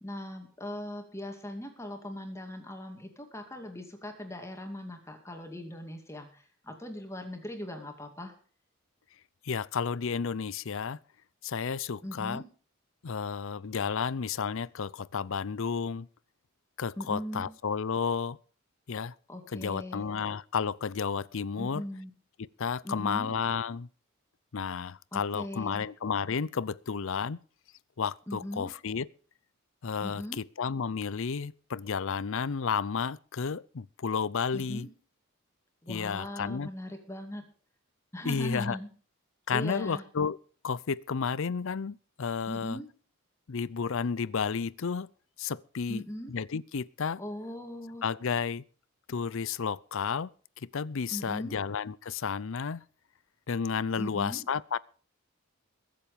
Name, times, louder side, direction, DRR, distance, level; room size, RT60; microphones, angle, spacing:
voice 1, 0.0-8.3 12.0-12.5 17.0-17.5 19.3-20.1 21.6-22.1 22.8-23.3 25.1-25.9 28.3-28.7 30.0-30.4 34.5-34.9 35.8-37.4 38.1-38.9 39.5-40.0 42.5-42.9 45.9-46.3 47.2-48.0 51.1-51.6 54.0-54.5, left 1 dB, 15° left, 2.4 m, -39 dB
voice 2, 9.4-11.0 11.4-12.4 13.0-16.1 16.8-18.4 18.9-19.1 19.5-21.8 22.4-23.9 24.5-27.4 28.0-29.1 29.8-34.9 35.9-36.7 38.2-38.8 39.5-40.4 40.6-42.8 43.5-45.1 45.4-47.2 48.0-48.6 49.1-50.3 50.7-52.8 53.5-54.8, left 6 dB, 65° left, 0.6 m, -32 dB
22.0 x 7.7 x 5.1 m
head